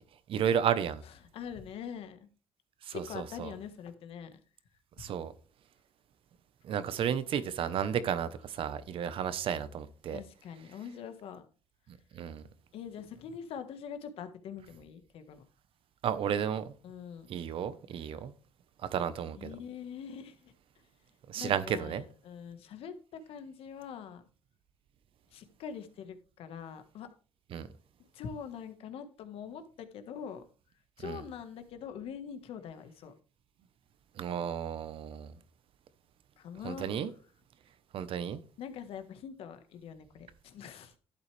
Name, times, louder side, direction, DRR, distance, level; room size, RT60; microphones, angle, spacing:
voice 1, 0.3-1.0 2.8-3.5 5.0-5.3 6.6-10.2 11.9-12.4 16.0-16.7 17.3-18.3 18.8-19.5 21.3-22.0 27.5-27.7 31.0-31.2 34.1-35.4 36.6-37.1 37.9-38.4, right 8 dB, 65° right, 1.1 m, -33 dB
voice 2, 1.0-2.3 2.9-4.4 7.6-7.9 10.1-11.5 12.7-15.5 16.8-17.3 19.3-20.5 21.3-24.2 25.3-27.1 28.0-30.4 31.0-33.1 36.4-36.9 38.6-41.0, left 7 dB, 75° left, 1.6 m, -44 dB
11.5 x 8.0 x 3.4 m
cardioid pair, 90°, 10 cm